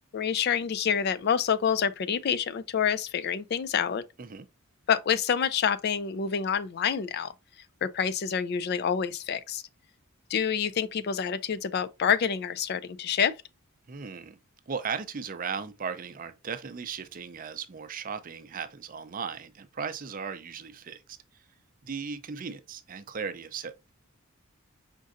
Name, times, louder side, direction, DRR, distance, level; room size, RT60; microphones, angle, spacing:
voice 1, 0.1-4.0 4.9-7.3 7.8-9.6 10.3-13.3, left 7 dB, 50° left, 0.3 m, -27 dB
voice 2, 13.9-14.4 14.7-21.0 21.8-23.9, right 6 dB, 40° right, 0.5 m, -37 dB
5.2 x 3.7 x 2.5 m
head